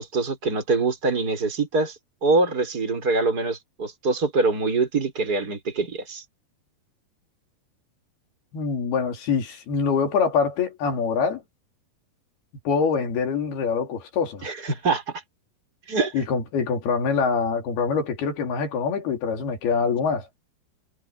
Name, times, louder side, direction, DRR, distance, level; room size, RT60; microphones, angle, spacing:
voice 1, 0.0-2.0 2.2-6.2 14.4-15.2 15.9-16.1, right 3 dB, 25° right, 6.3 m, -24 dB
voice 2, 8.5-11.4 12.6-14.4 16.1-20.3, left 5 dB, 85° left, 5.1 m, -24 dB
omnidirectional pair, 4.3 m